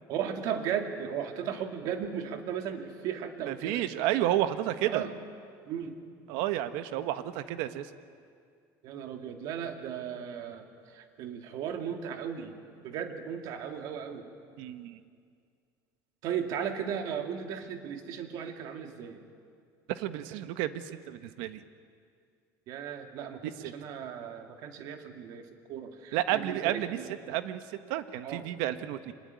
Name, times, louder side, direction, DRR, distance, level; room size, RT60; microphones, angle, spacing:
voice 1, 0.1-3.8 4.8-5.1 5.7-6.0 8.8-12.6 12.8-14.3 16.2-19.2 22.7-27.1 28.2-28.4, right 8 dB, 55° right, 5 dB, 2.4 m, -36 dB
voice 2, 3.5-5.0 6.3-7.9 14.6-15.0 19.9-21.6 23.4-23.7 26.1-27.0 27.3-29.1, right 13 dB, 75° right, 11 dB, 1.3 m, -31 dB
24.5 x 20.0 x 9.6 m, 2.2 s
cardioid pair, 165°, 8 cm